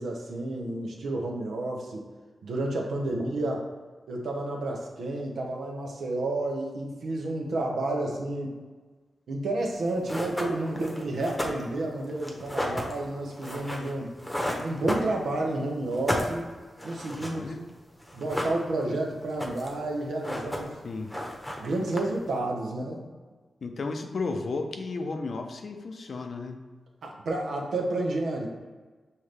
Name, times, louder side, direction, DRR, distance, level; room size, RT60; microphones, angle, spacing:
voice 1, 0.0-2.0 2.4-3.6 4.1-8.6 9.3-14.1 14.6-16.5 16.8-17.4 18.1-20.8 21.6-23.0 27.0-28.5, right 2 dB, 85° right, 0 dB, 0.8 m, -30 dB
sound 1, 9.7-9.8 10.1-15.5 15.8-17.7 18.0-18.9 19.2-19.8 20.1-20.8 21.1-22.3, equal, 10° left, 0.9 m, -33 dB
voice 2, 17.2-17.7 20.8-21.1 23.6-26.7, left 3 dB, 65° left, 5 dB, 0.5 m, -34 dB
5.7 x 2.7 x 3.3 m, 1.4 s
cardioid pair, 55°, 0 cm